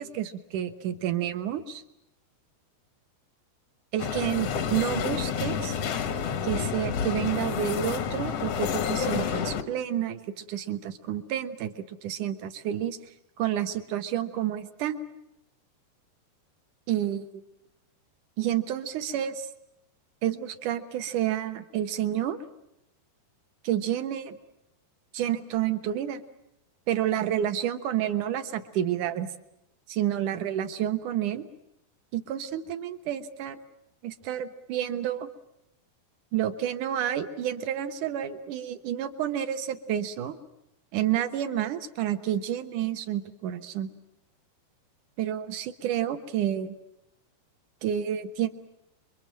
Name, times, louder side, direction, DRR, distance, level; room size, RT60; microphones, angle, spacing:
voice 1, 0.0-1.8 3.9-5.8 6.4-13.0 13.4-15.0 16.9-17.4 18.4-19.5 20.2-22.4 23.6-24.4 25.1-26.2 26.9-29.3 29.9-31.4 32.1-33.6 34.0-35.3 36.3-40.4 40.9-43.9 45.2-46.7 47.8-48.5, right 11 dB, 65° right, 9 dB, 2.1 m, -29 dB
sound 1, 4.0-9.6, left 7 dB, 80° left, 1.4 m, -29 dB
28.0 x 23.5 x 7.6 m, 0.83 s
omnidirectional pair, 5.0 m